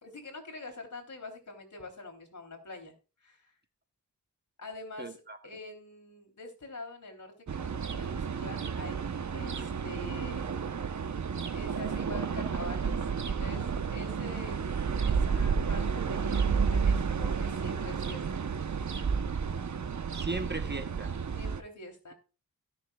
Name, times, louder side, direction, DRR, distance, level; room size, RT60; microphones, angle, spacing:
voice 1, 0.0-2.9 3.2-3.5 4.6-7.3 7.7-10.4 11.4-12.9 13.3-13.6 13.9-14.6 15.0-18.4 21.3-22.1, left 2 dB, 55° left, 3.5 m, -45 dB
voice 2, 5.0-5.4 9.3-9.7 20.1-21.2, right 3 dB, 30° right, 1.1 m, -38 dB
sound 1, 7.5-21.6, right 6 dB, 50° right, 1.0 m, -31 dB
17.0 x 6.7 x 2.4 m
cardioid pair, 45°, 36 cm